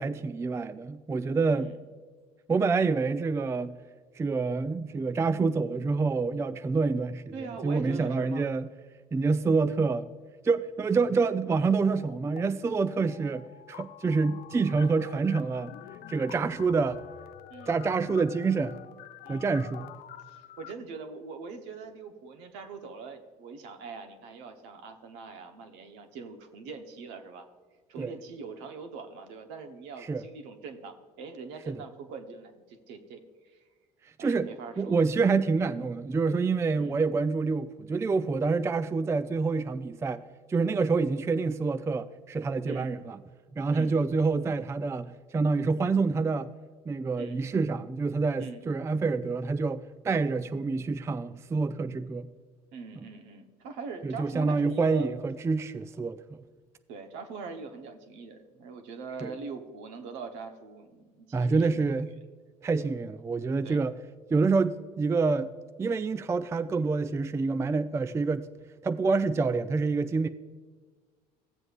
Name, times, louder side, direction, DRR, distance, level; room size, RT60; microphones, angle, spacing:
voice 1, 0.0-1.7 2.5-3.8 4.2-7.3 7.6-8.7 9.1-10.1 10.4-15.7 16.1-17.0 17.7-18.8 19.3-19.9 28.0-28.1 30.0-30.2 31.7-31.8 34.2-34.5 34.8-40.2 40.5-43.2 43.5-46.5 46.9-52.3 54.0-56.4 59.2-59.4 61.3-62.1 62.6-63.9 64.3-65.5 65.8-68.5 68.8-70.3, right 4 dB, 15° right, 0.3 m, -27 dB
voice 2, 7.3-8.5 16.3-16.6 17.5-17.7 19.2-19.5 20.3-27.5 27.9-33.6 34.2-35.0 36.8-37.0 42.6-42.9 43.7-44.0 47.1-47.4 48.4-48.6 52.7-55.1 56.9-61.9 63.6-63.9, right 4 dB, 65° right, 1.1 m, -42 dB
sound 1, 11.5-12.4 12.7-20.7, left 11 dB, 50° left, 0.5 m, -47 dB
16.0 x 7.7 x 2.5 m
hypercardioid pair, 60°, 20 cm